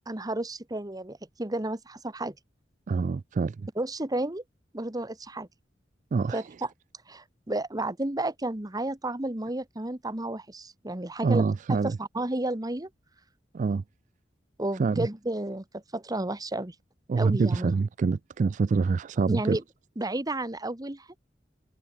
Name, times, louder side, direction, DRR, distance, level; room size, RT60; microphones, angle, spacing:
voice 1, 0.1-2.3 3.7-4.4 4.7-5.5 6.3-6.7 7.1-12.9 14.6-16.7 17.2-17.7 19.3-19.6 20.0-21.1, right 1 dB, 20° right, 1.4 m, -32 dB
voice 2, 2.9-3.7 6.1-6.4 11.2-12.0 13.5-13.8 14.8-15.1 17.1-19.6, right 4 dB, 45° right, 0.3 m, -25 dB
open air
head